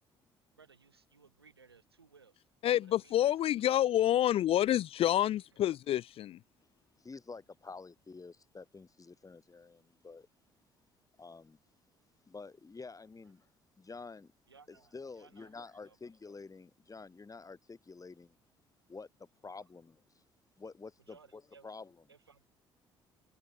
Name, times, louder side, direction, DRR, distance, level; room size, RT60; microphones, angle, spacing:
voice 1, 0.5-2.4 2.8-4.2 5.4-5.6 5.9-6.0 13.2-13.3 14.5-16.1 19.6-19.7 21.0-21.7 22.1-22.5, right 5 dB, 90° right, 7.0 m, -62 dB
voice 2, 2.6-6.3, left 12 dB, 50° left, 0.4 m, -28 dB
voice 3, 7.0-10.3 11.2-11.6 12.3-13.5 13.8-14.3 14.9-18.4 18.9-19.1 19.4-20.0 20.6-21.9, left 4 dB, 25° left, 5.9 m, -49 dB
figure-of-eight pair, 50°, 13 cm